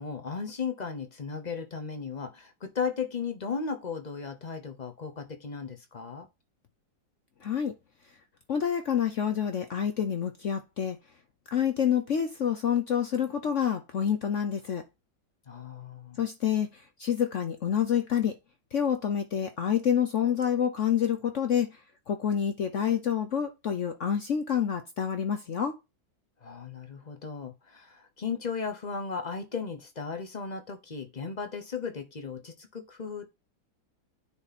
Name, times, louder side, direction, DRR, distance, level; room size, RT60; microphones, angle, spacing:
voice 1, 0.0-6.3 15.5-16.2 26.4-33.3, left 5 dB, 30° left, 0.8 m, -36 dB
voice 2, 7.4-7.7 8.5-11.0 11.5-14.8 16.2-18.3 18.7-21.8 22.1-25.8, left 8 dB, 65° left, 0.7 m, -28 dB
9.7 x 3.7 x 4.2 m
omnidirectional pair, 2.1 m